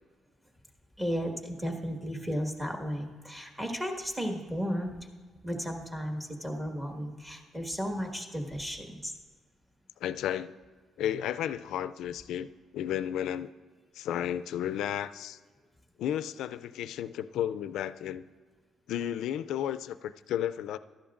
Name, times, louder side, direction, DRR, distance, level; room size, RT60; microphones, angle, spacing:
voice 1, 1.0-5.1 5.3-9.1, equal, 15° right, 2 dB, 1.7 m, -34 dB
voice 2, 10.0-10.5 11.0-13.5 14.0-15.4 16.0-18.2 18.9-20.8, left 10 dB, 85° left, 14 dB, 0.3 m, -33 dB
15.0 x 11.5 x 2.5 m, 1.4 s
cardioid pair, 90°, 0 cm